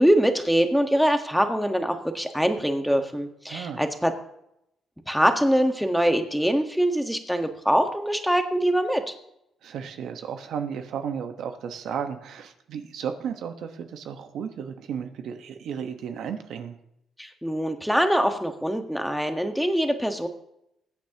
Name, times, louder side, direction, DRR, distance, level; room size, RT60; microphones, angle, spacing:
voice 1, 0.0-4.1 5.1-9.1 17.2-20.3, equal, ahead, 5 dB, 1.4 m, -23 dB
voice 2, 3.5-3.8 9.6-16.8, right 7 dB, 75° right, 6 dB, 1.3 m, -34 dB
21.5 x 8.4 x 3.0 m, 0.80 s
cardioid pair, 90°, 0 cm